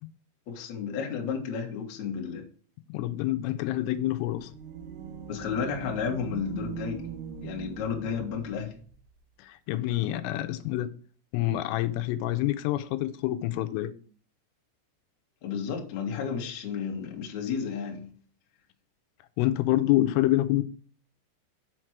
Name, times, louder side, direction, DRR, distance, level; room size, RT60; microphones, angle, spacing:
voice 1, 0.5-2.4 5.3-7.0 7.4-8.7 15.4-18.1, left 6 dB, 60° left, 1.9 m, -32 dB
voice 2, 2.9-4.5 9.4-10.9 11.3-13.9 19.4-20.6, left 15 dB, 85° left, 3.1 m, -27 dB
sound 1, 4.1-8.9, right 7 dB, 75° right, 3.3 m, -41 dB
7.2 x 6.1 x 4.5 m
omnidirectional pair, 5.8 m